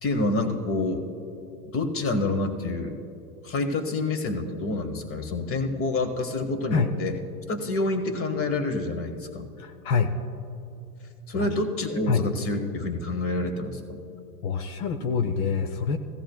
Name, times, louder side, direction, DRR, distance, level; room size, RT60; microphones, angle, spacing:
voice 1, 0.0-1.0 1.7-2.9 3.4-7.2 7.5-9.5 11.3-14.0, left 2 dB, 30° left, 7 dB, 1.3 m, -27 dB
voice 2, 9.6-10.1 11.3-11.5 12.1-12.2 14.4-16.0, left 5 dB, 70° left, 6 dB, 0.8 m, -26 dB
17.5 x 14.0 x 2.3 m, 2.8 s
supercardioid pair, 110°, 44 cm